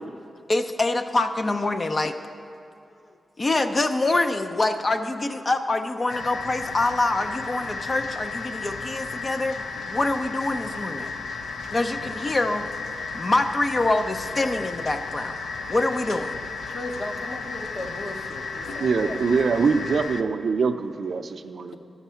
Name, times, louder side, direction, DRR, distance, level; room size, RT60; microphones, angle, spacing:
voice 1, 0.5-2.2 3.4-9.6 9.9-11.1 11.7-12.7 13.1-15.3 15.7-16.3, left 2 dB, 35° left, 7 dB, 0.5 m, -25 dB
sound 1, 6.1-20.2, left 4 dB, 85° left, 0.5 m, -34 dB
voice 2, 16.7-19.2, left 1 dB, 50° left, 3 dB, 1.0 m, -36 dB
voice 3, 18.8-21.8, right 5 dB, 65° right, 7 dB, 0.4 m, -23 dB
12.0 x 7.1 x 5.6 m, 2.6 s
wide cardioid pair, 110°, 0 cm